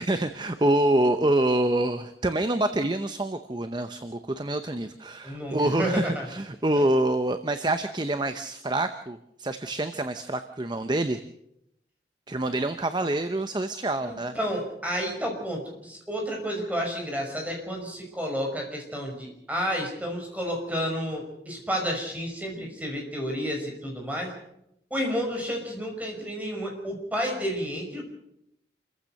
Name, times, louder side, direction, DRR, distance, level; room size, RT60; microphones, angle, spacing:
voice 1, 0.0-11.2 12.3-14.3, right 1 dB, 25° right, 9 dB, 0.8 m, -26 dB
voice 2, 5.2-6.2 14.0-24.3 24.9-28.0, equal, 10° right, 1 dB, 5.5 m, -31 dB
28.0 x 15.0 x 6.6 m, 0.80 s
head